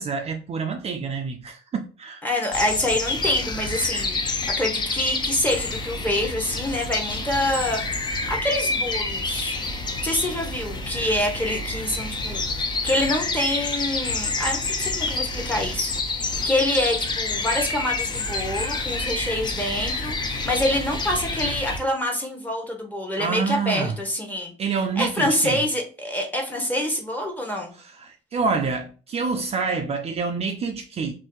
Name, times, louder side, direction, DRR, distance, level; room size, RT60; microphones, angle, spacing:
voice 1, 0.0-2.2 23.2-24.0 24.6-25.6 28.0-31.1, right 5 dB, 40° right, 0.4 m, -27 dB
voice 2, 2.2-4.2 4.6-9.6 10.0-12.4 12.8-24.5 25.0-27.7, left 1 dB, 10° left, 1.0 m, -26 dB
sound 1, 2.5-21.8, left 3 dB, 25° left, 0.5 m, -28 dB
2.6 x 2.6 x 3.7 m
cardioid pair, 110°, 17 cm